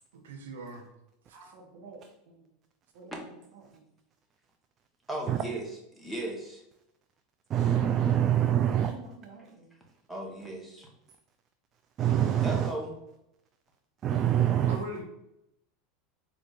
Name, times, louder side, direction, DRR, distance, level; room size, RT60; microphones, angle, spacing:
voice 1, 0.1-0.8 14.7-15.0, right 1 dB, 90° right, 2 dB, 0.7 m, -39 dB
voice 2, 1.3-2.5 2.9-3.9 8.7-9.7, right 3 dB, 65° right, 2 dB, 1.0 m, -51 dB
voice 3, 5.1-5.7 6.0-6.6 10.1-10.9 12.4-13.0, right 1 dB, ahead, -2 dB, 1.0 m, -36 dB
voice 4, 7.5-8.9 12.0-12.7 14.0-14.8, right 10 dB, 40° right, 6 dB, 0.3 m, -25 dB
4.0 x 2.4 x 3.8 m, 0.83 s
hypercardioid pair, 105°, 0 cm